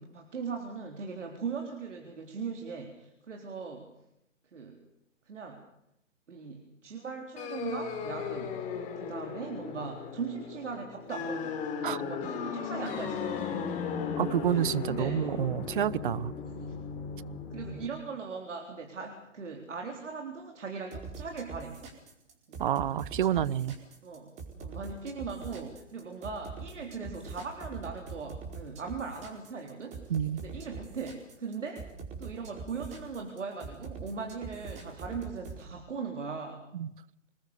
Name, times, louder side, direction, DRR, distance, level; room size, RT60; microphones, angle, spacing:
voice 1, 0.0-3.9 4.5-4.8 5.3-5.6 6.3-13.7 14.4-15.4 16.6-16.8 17.5-21.8 22.5-22.7 24.0-30.1 30.4-31.9 32.2-36.7, right 5 dB, 65° right, 4.1 m, -39 dB
sound 1, 7.4-17.9, left 6 dB, 20° left, 3.6 m, -36 dB
voice 2, 14.2-16.3 22.6-23.8 30.1-30.4 36.7-36.9, right 10 dB, 40° right, 0.9 m, -29 dB
sound 2, 20.9-35.6, right 4 dB, 15° right, 4.5 m, -43 dB
26.5 x 20.5 x 6.9 m
figure-of-eight pair, 135°, 38 cm